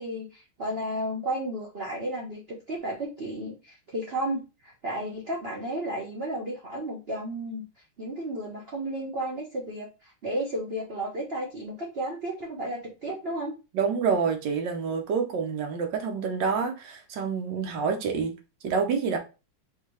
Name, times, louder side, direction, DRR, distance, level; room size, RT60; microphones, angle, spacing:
voice 1, 0.0-2.4 2.7-7.6 8.0-13.5, right 1 dB, 80° right, 0.5 m, -33 dB
voice 2, 13.7-18.3 18.6-19.2, right 5 dB, 65° right, 1.3 m, -27 dB
4.6 x 2.9 x 3.0 m
omnidirectional pair, 2.3 m